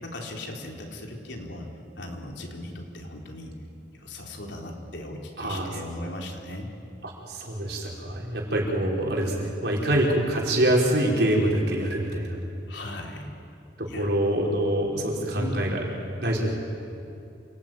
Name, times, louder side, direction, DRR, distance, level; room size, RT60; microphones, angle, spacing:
voice 1, 0.0-1.7 2.0-3.5 3.9-6.7 12.7-13.3 13.9-14.1 15.3-15.7, left 1 dB, 75° left, 1 dB, 3.8 m, -37 dB
voice 2, 5.4-5.7 7.0-12.4 13.8-15.8 16.2-16.6, right 1 dB, 65° right, -2 dB, 5.2 m, -25 dB
28.0 x 19.0 x 9.4 m, 2.7 s
head